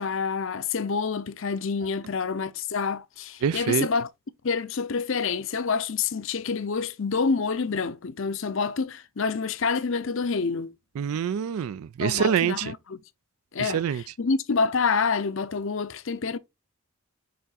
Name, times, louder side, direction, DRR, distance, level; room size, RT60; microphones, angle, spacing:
voice 1, 0.0-4.1 4.4-10.7 12.0-13.0 13.5-16.4, left 5 dB, 60° left, 0.6 m, -27 dB
voice 2, 3.4-3.9 11.0-12.7 13.6-14.0, right 8 dB, 75° right, 0.3 m, -25 dB
6.8 x 3.7 x 4.0 m
head